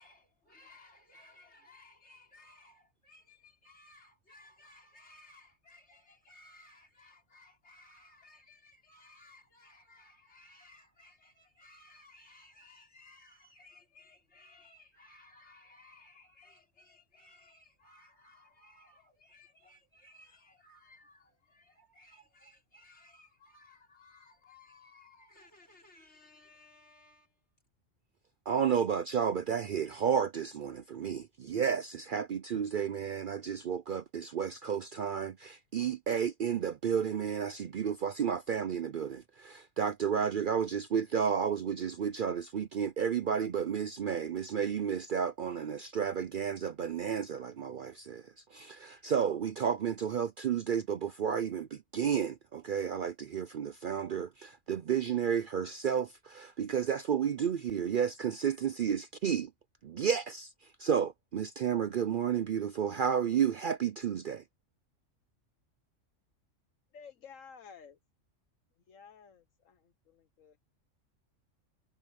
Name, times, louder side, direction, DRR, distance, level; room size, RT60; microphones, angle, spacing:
voice 1, 0.0-27.5, left 2 dB, 60° left, 4.7 m, -59 dB
voice 2, 28.5-59.5 59.8-64.4, right 7 dB, 55° right, 0.6 m, -32 dB
voice 3, 66.9-68.0 68.7-70.6, left 6 dB, 85° left, 1.5 m, -53 dB
omnidirectional pair, 1.3 m